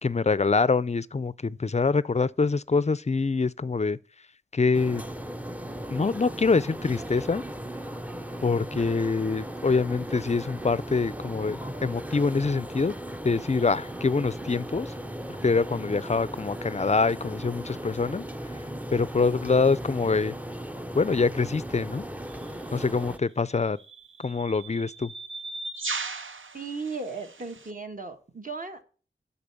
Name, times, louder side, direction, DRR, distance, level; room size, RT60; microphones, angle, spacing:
voice 1, 0.0-4.0 4.5-5.0 5.9-7.4 8.4-12.9 13.2-14.9 15.4-18.3 18.9-20.3 20.9-22.0 22.7-23.8 24.2-25.1, left 4 dB, 35° left, 0.4 m, -25 dB
sound 1, 4.7-23.2, right 1 dB, 5° right, 0.7 m, -37 dB
sound 2, 22.3-22.5 23.5-27.7, right 3 dB, 70° right, 0.7 m, -38 dB
voice 2, 26.5-28.8, right 4 dB, 40° right, 1.4 m, -36 dB
11.5 x 4.2 x 7.0 m
wide cardioid pair, 50°, 21 cm